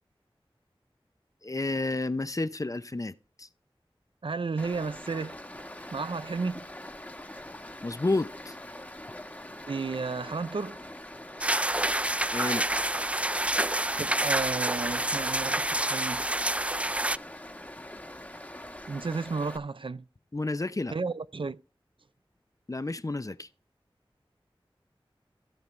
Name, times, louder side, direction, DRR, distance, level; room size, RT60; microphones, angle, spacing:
voice 1, 1.4-3.5 7.8-8.6 12.3-12.7 20.3-20.9 22.7-23.5, left 2 dB, 35° left, 0.7 m, -31 dB
voice 2, 4.2-5.4 5.9-6.7 9.6-10.8 14.0-16.2 18.9-20.1 20.9-21.6, right 4 dB, 65° right, 0.6 m, -33 dB
Stream, 4.6-19.6, left 1 dB, 15° left, 1.3 m, -44 dB
sound 1, 11.4-17.2, right 1 dB, 15° right, 0.4 m, -28 dB
16.0 x 5.9 x 3.3 m
wide cardioid pair, 55°, 9 cm